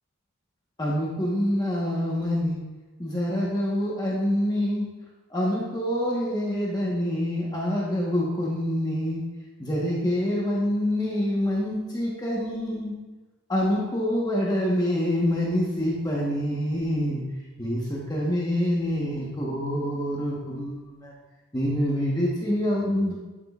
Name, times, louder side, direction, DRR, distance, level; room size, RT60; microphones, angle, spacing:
voice 1, 0.8-2.6 3.0-4.9 5.3-9.2 9.6-13.0 13.5-17.2 17.6-21.1 21.5-23.1, equal, 20° left, -4 dB, 1.2 m, -26 dB
11.5 x 7.3 x 2.5 m, 1.2 s
head